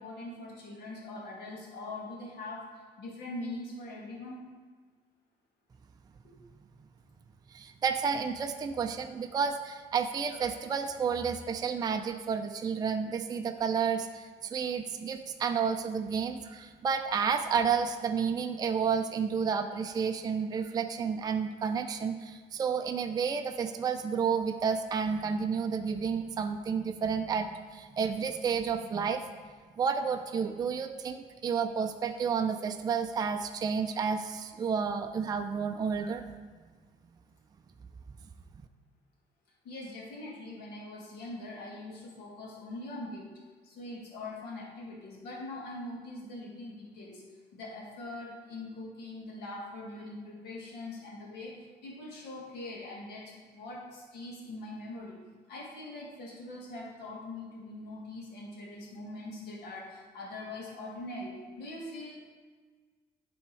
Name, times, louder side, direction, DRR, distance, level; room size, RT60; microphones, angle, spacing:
voice 1, 0.0-2.7 3.0-4.4 6.2-6.4 39.6-55.2 55.5-62.1, left 2 dB, 75° left, -3 dB, 1.9 m, -42 dB
voice 2, 7.5-29.2 29.8-36.2, right 6 dB, 25° right, 6 dB, 0.4 m, -31 dB
9.8 x 3.5 x 4.4 m, 1.5 s
cardioid pair, 110°, 17 cm